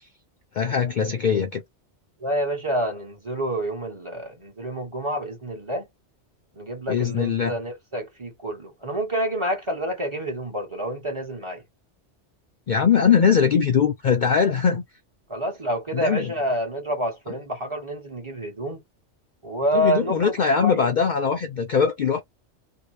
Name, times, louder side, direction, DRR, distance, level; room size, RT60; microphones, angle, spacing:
voice 1, 0.5-1.6 6.9-7.6 12.7-14.8 15.9-16.3 19.7-22.2, left 6 dB, 55° left, 0.5 m, -21 dB
voice 2, 2.2-5.8 6.6-11.6 15.3-18.8 19.4-20.9, equal, 30° right, 0.9 m, -28 dB
2.7 x 2.1 x 3.1 m
omnidirectional pair, 1.2 m